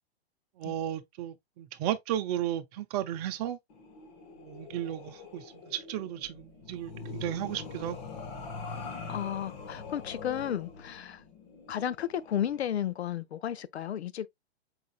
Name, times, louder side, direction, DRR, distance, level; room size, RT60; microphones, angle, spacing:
voice 1, 0.6-3.6 4.4-8.1, right 11 dB, 40° right, 0.7 m, -34 dB
sound 1, 3.7-12.7, left 4 dB, 40° left, 1.2 m, -43 dB
voice 2, 9.1-11.2 11.7-14.3, left 10 dB, 85° left, 0.6 m, -33 dB
4.7 x 3.8 x 2.3 m
hypercardioid pair, 125°, 32 cm